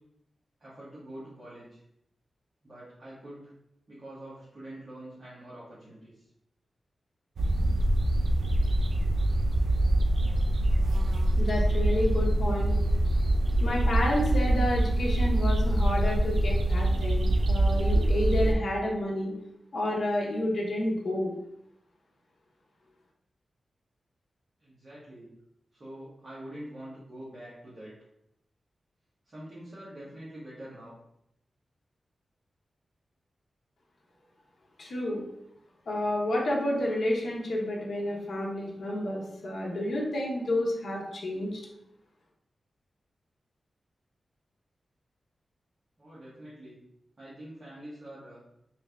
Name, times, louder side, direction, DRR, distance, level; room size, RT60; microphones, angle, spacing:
voice 1, 0.6-1.8 2.6-3.5 3.9-6.2 24.6-25.3 25.7-27.9 29.3-30.9 46.0-46.8 47.2-48.4, right 1 dB, 35° right, -10 dB, 0.9 m, -45 dB
sound 1, 7.4-18.5, right 1 dB, 70° right, 0.4 m, -24 dB
voice 2, 11.4-12.7 13.6-19.3 19.7-21.3 34.8-35.2 35.9-41.6, left 1 dB, 60° left, -3 dB, 0.7 m, -30 dB
3.1 x 2.6 x 3.3 m, 0.79 s
wide cardioid pair, 165°, 0 cm